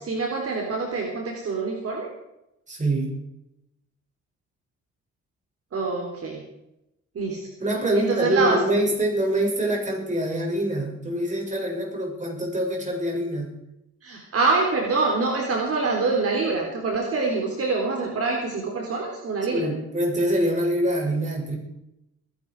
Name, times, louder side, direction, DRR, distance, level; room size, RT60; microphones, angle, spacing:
voice 1, 0.0-2.1 5.7-6.4 7.2-7.4 7.9-8.6 14.0-19.7, right 3 dB, 50° right, 0 dB, 3.9 m, -25 dB
voice 2, 2.7-3.2 7.6-13.5 19.5-21.6, right 1 dB, 25° right, -1 dB, 7.1 m, -25 dB
22.5 x 11.5 x 4.9 m, 0.87 s
cardioid pair, 90°, 30 cm